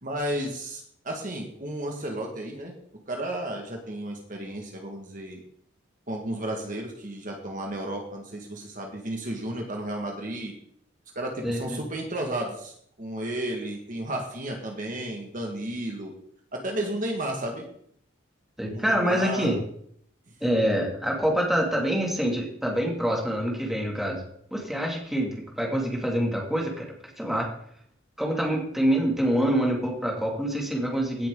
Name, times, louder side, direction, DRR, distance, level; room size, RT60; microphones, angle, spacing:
voice 1, 0.0-2.7 3.1-5.4 6.1-10.5 11.1-16.1 16.5-17.6 18.7-19.5 20.3-20.4, right 1 dB, 40° right, 1 dB, 1.7 m, -33 dB
voice 2, 11.4-11.8 18.6-19.6 20.4-24.2 24.5-26.9 27.2-27.5 28.2-31.3, equal, ahead, -1 dB, 2.3 m, -26 dB
16.5 x 7.1 x 3.8 m, 0.66 s
head